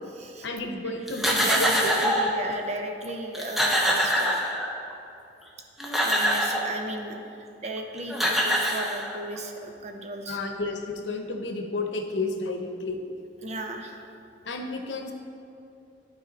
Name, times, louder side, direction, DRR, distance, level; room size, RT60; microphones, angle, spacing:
voice 1, 0.4-2.0 10.3-13.0 14.4-15.1, left 2 dB, 90° left, 4 dB, 0.8 m, -31 dB
sound 1, 1.1-2.4 3.0-3.1 3.3-4.9 5.6-6.7 7.8-7.9 8.1-9.4, equal, ahead, 0.7 m, -24 dB
voice 2, 1.2-4.5 6.0-10.4 13.4-14.0, right 2 dB, 40° right, 3 dB, 0.7 m, -35 dB
12.0 x 4.6 x 4.0 m, 2.7 s
head